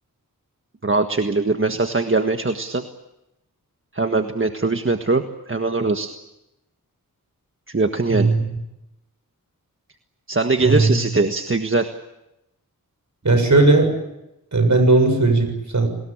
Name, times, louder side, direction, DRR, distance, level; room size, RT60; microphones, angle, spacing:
voice 1, 0.8-2.8 3.9-6.1 7.7-8.4 10.3-11.9 13.3-13.4, right 3 dB, 35° right, 6 dB, 1.6 m, -21 dB
voice 2, 10.6-11.0 13.2-13.9 14.5-15.9, right 2 dB, 55° right, 7 dB, 7.2 m, -16 dB
29.5 x 20.5 x 8.8 m, 0.91 s
wide cardioid pair, 70°, 35 cm